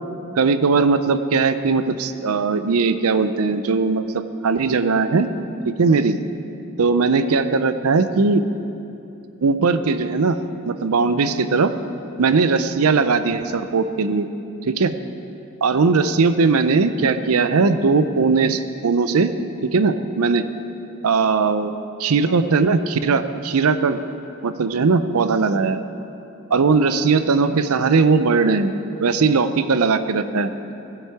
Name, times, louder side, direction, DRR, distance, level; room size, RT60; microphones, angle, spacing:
voice 1, 0.4-5.3 5.7-6.2 6.8-8.4 9.4-10.4 10.6-11.7 12.2-14.3 14.7-14.9 15.6-19.3 19.6-20.5 21.0-21.7 22.0-24.0 24.4-25.8 26.5-28.7 29.0-30.7, right 4 dB, 85° right, 11 dB, 0.5 m, -19 dB
16.0 x 7.9 x 4.8 m, 2.8 s
head